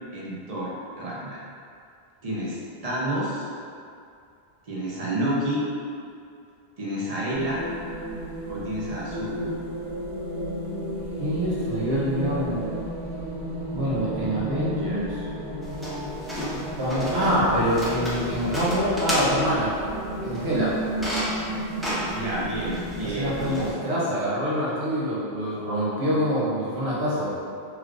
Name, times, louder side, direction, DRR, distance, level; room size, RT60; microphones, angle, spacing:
voice 1, 0.1-1.4 2.2-3.5 4.7-5.6 6.8-7.6 8.5-9.5 22.1-23.8, right 1 dB, 40° right, -7 dB, 0.7 m, -29 dB
sound 1, 7.3-23.7, right 1 dB, 70° right, 1.6 m, -33 dB
voice 2, 11.2-12.7 13.7-15.2 16.8-19.7 20.2-20.7 23.0-27.3, equal, 90° right, -8 dB, 1.0 m, -25 dB
sound 2, 15.6-23.7, equal, ahead, 0.4 m, -33 dB
3.2 x 3.2 x 2.4 m, 2.4 s
omnidirectional pair, 1.1 m